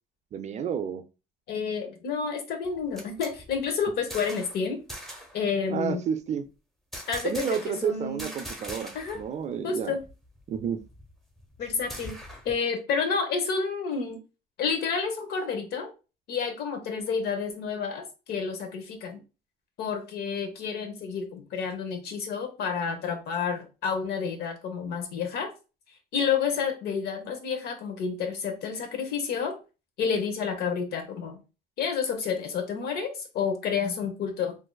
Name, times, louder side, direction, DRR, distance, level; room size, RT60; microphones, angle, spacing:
voice 1, 0.3-1.0 5.7-6.4 7.2-10.0 10.5-10.8, right 7 dB, 45° right, 0.4 m, -30 dB
voice 2, 1.5-4.8 5.3-6.0 7.1-8.3 8.9-9.2 9.6-10.0 11.6-12.2 12.4-14.2 14.6-15.9 16.3-19.2 19.8-25.5 26.1-29.6 30.0-31.4 31.8-34.6, left 6 dB, 70° left, 0.9 m, -30 dB
sound 1, 2.6-4.6 4.9-5.4 6.9-7.9 8.2-9.3 9.5-9.6 10.0-12.6, equal, ahead, 1.0 m, -42 dB
3.7 x 2.6 x 2.2 m
cardioid pair, 110°, 17 cm